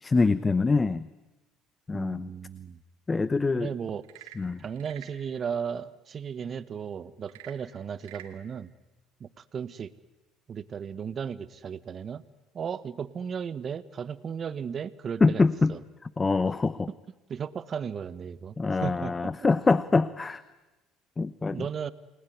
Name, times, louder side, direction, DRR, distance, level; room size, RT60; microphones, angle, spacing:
voice 1, 0.0-1.1 1.9-2.3 3.1-3.7 4.4-4.6 15.2-15.7 16.2-16.9 18.6-20.4 21.2-21.6, left 3 dB, 25° left, 16 dB, 0.9 m, -24 dB
voice 2, 1.9-2.8 3.5-4.3 4.6-8.7 9.2-9.9 10.5-12.2 12.5-15.8 17.3-18.5 18.8-19.3 21.5-21.9, right 7 dB, 45° right, 16 dB, 1.3 m, -35 dB
Frog / Percussion / Wood, 3.9-5.2 7.2-8.4, right 12 dB, 80° right, 2.4 m, -48 dB
29.0 x 20.0 x 9.5 m, 1.1 s
hypercardioid pair, 65°, 0 cm